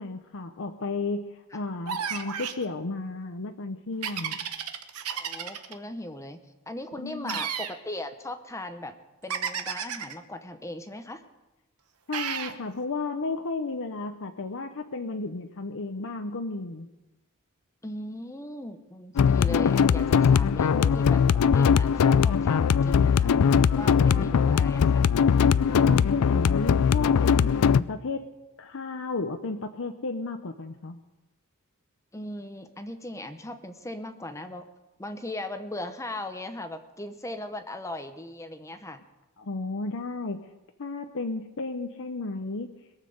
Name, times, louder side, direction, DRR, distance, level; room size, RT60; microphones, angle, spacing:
voice 1, 0.0-4.5 7.0-7.4 12.1-16.9 24.0-24.6 25.7-28.3 28.6-31.0 39.4-40.5 40.8-42.7, left 3 dB, 60° left, 6 dB, 0.8 m, -33 dB
sound 1, 1.9-2.6 4.0-5.7 7.3-7.8 9.3-10.1 12.1-12.6, right 8 dB, 80° right, 1.1 m, -32 dB
voice 2, 5.1-6.4 6.7-9.0 9.2-11.2 17.8-23.4 23.8-25.0 32.1-34.6 35.0-39.0, left 1 dB, 15° left, 8 dB, 0.8 m, -38 dB
sound 2, 19.2-27.8, left 7 dB, 75° left, 0.4 m, -21 dB
21.5 x 7.5 x 6.6 m, 1.0 s
head